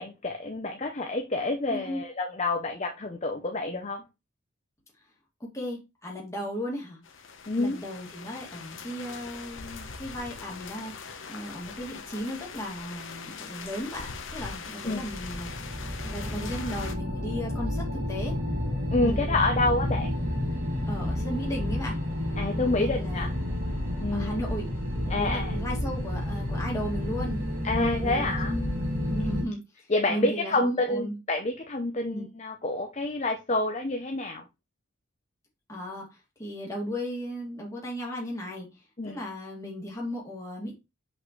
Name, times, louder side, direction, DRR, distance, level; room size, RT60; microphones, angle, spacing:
voice 1, 0.0-4.0 7.5-7.8 14.8-15.1 18.9-20.1 22.4-23.3 24.0-24.4 25.1-25.5 27.6-28.5 29.9-34.4 39.0-39.2, left 2 dB, 30° left, 0.7 m, -28 dB
voice 2, 1.7-2.0 5.5-7.0 7.5-15.5 16.0-18.4 19.0-19.3 19.6-20.1 20.9-22.0 22.5-23.4 24.1-24.7 25.0-28.8 29.1-29.6 30.1-31.2 32.1-32.3 35.7-38.7 39.0-40.8, equal, 15° left, 2.4 m, -36 dB
sound 1, 7.0-17.0, left 5 dB, 65° left, 1.0 m, -41 dB
sound 2, 14.8-29.4, left 1 dB, 40° right, 2.8 m, -30 dB
6.2 x 5.5 x 3.2 m
head